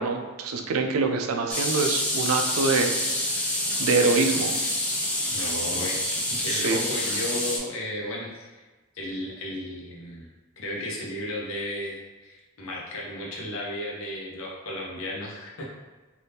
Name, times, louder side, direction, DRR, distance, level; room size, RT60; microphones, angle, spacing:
voice 1, 0.0-2.9 3.8-4.5 6.5-6.8, right 4 dB, 90° right, 4 dB, 0.4 m, -25 dB
sound 1, 1.5-7.6, left 1 dB, 5° left, 0.4 m, -27 dB
voice 2, 5.3-8.5 8.9-10.3 10.6-15.7, left 1 dB, 75° left, -3 dB, 0.8 m, -34 dB
2.7 x 2.6 x 3.4 m, 1.2 s
head